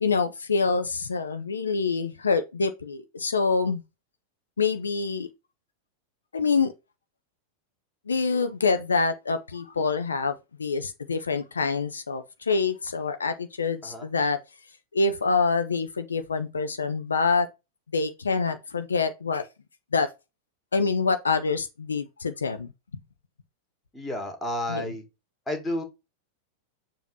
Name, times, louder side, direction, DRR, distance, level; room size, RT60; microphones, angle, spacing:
voice 1, 0.0-3.8 4.6-5.3 6.3-6.7 8.1-14.4 14.9-17.5 17.9-19.5 19.9-20.1 20.7-22.7 24.7-24.9, left 4 dB, 75° left, 0.7 m, -26 dB
voice 2, 23.9-25.0 25.5-25.8, left 1 dB, 10° left, 2.1 m, -31 dB
7.1 x 3.0 x 5.4 m
figure-of-eight pair, 90°, 0 cm